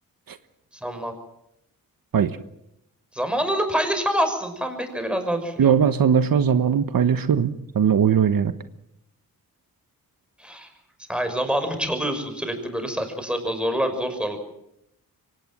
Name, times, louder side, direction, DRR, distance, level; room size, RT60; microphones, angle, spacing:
voice 1, 0.8-1.1 3.1-5.7 10.4-10.7 11.1-14.4, equal, 5° right, 6 dB, 5.9 m, -26 dB
voice 2, 5.6-8.5, right 7 dB, 70° right, 11 dB, 1.2 m, -20 dB
24.0 x 18.5 x 7.7 m, 0.78 s
cardioid pair, 90°, 36 cm